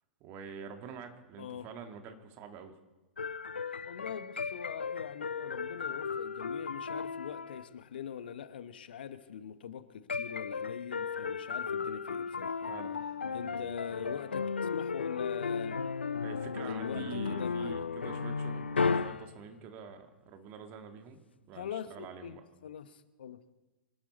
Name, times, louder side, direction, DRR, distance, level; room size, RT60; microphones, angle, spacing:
voice 1, 0.2-2.7 12.6-14.5 16.2-21.2 21.5-22.4, right 7 dB, 35° right, 6 dB, 1.8 m, -47 dB
sound 1, 3.2-7.8 10.1-19.3, left 5 dB, 80° left, 0.4 m, -35 dB
voice 2, 3.8-12.7 13.3-15.8 16.7-17.7 21.5-23.4, left 9 dB, 60° left, 13 dB, 1.0 m, -43 dB
25.5 x 12.0 x 4.1 m, 1.1 s
figure-of-eight pair, 100°, 6 cm